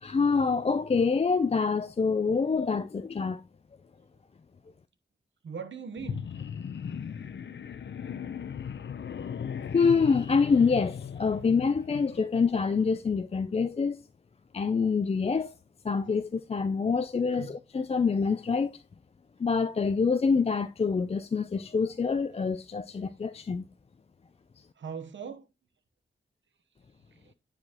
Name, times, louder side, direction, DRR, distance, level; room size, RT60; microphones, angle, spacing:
voice 1, 0.0-3.4 9.7-14.0 14.5-15.5 15.8-18.8 19.4-23.6, left 5 dB, 35° left, 0.4 m, -26 dB
voice 2, 5.4-6.3 17.3-17.6 24.8-25.5 27.1-27.3, right 6 dB, 80° right, 0.9 m, -40 dB
sound 1, 6.0-12.2, left 7 dB, 75° left, 0.6 m, -37 dB
9.6 x 4.9 x 2.9 m
wide cardioid pair, 115°, 19 cm